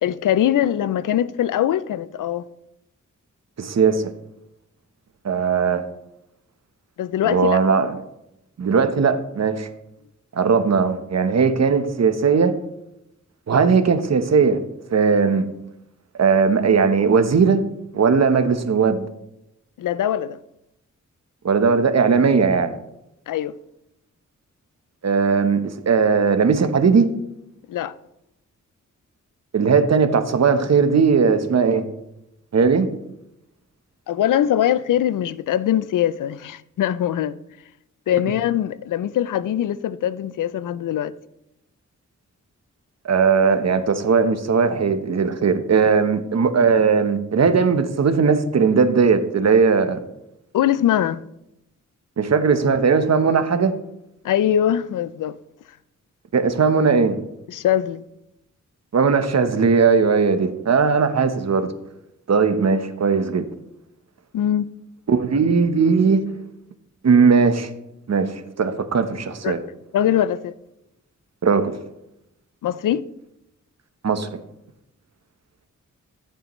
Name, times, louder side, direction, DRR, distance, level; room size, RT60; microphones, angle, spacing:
voice 1, 0.0-2.4 7.0-7.6 19.8-20.4 23.3-23.6 27.7-27.9 34.1-37.4 38.1-41.1 50.5-51.2 54.2-55.4 57.5-58.0 64.3-64.7 69.4-69.6 69.9-70.5 72.6-73.0, left 11 dB, 90° left, 0.5 m, -22 dB
voice 2, 3.6-4.0 5.2-5.8 7.2-7.9 8.6-9.7 10.4-12.5 13.5-14.6 14.9-15.5 16.2-17.6 17.9-19.1 21.4-22.8 25.0-27.1 29.5-31.9 32.5-32.9 43.0-50.0 52.2-53.7 56.3-57.2 58.9-61.7 62.3-63.5 65.1-66.2 67.0-67.7 68.1-69.6 71.4-71.7 74.0-74.3, right 5 dB, 55° right, 1.0 m, -18 dB
14.5 x 6.8 x 3.1 m
cardioid pair, 60°, 31 cm